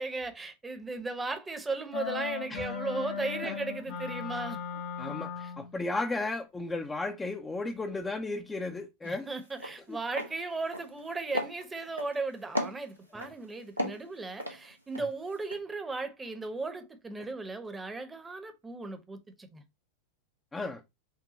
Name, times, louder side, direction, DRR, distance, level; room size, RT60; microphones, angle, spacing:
voice 1, 0.0-4.6 5.0-5.1 5.4-5.5 9.0-19.6, right 3 dB, 10° right, 0.8 m, -36 dB
sound 1, 1.9-5.7, left 6 dB, 55° left, 1.3 m, -37 dB
voice 2, 5.0-5.3 5.6-9.3 9.9-10.0 13.1-13.2 20.5-20.8, left 2 dB, 15° left, 0.5 m, -34 dB
sound 2, 9.0-9.2 9.5-9.8 10.1-10.3 10.7-11.1 11.3-12.2 12.6-13.3 13.8-15.1 15.4-15.6, equal, 90° right, 0.8 m, -34 dB
5.7 x 2.2 x 4.0 m
figure-of-eight pair, 90°, 0 cm